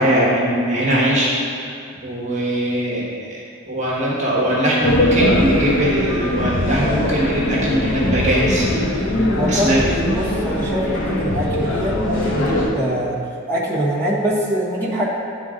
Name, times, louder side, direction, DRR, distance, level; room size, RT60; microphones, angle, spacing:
voice 1, 0.0-1.7 2.0-3.4 3.7-8.7 9.5-9.8, right 1 dB, 35° right, -6 dB, 1.3 m, -20 dB
sound 1, 4.8-12.7, left 1 dB, 60° left, 1.3 m, -21 dB
voice 2, 9.3-13.2 13.5-15.0, equal, 10° left, -9 dB, 1.4 m, -23 dB
10.0 x 3.9 x 3.8 m, 2.4 s
head